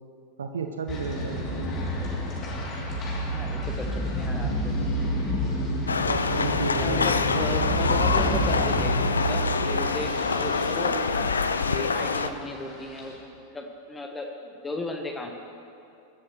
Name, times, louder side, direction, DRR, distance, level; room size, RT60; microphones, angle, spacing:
voice 1, 0.4-1.4 6.1-7.7, right 5 dB, 70° right, 5 dB, 0.8 m, -32 dB
sound 1, 0.9-13.1, equal, 30° left, 3.0 m, -30 dB
voice 2, 3.3-4.7 6.8-11.3 11.7-15.3, left 2 dB, 10° left, 3 dB, 1.2 m, -35 dB
sound 2, 5.9-12.3, left 4 dB, 75° left, 0.5 m, -26 dB
22.0 x 13.0 x 3.2 m, 2.6 s
figure-of-eight pair, 90°, 0 cm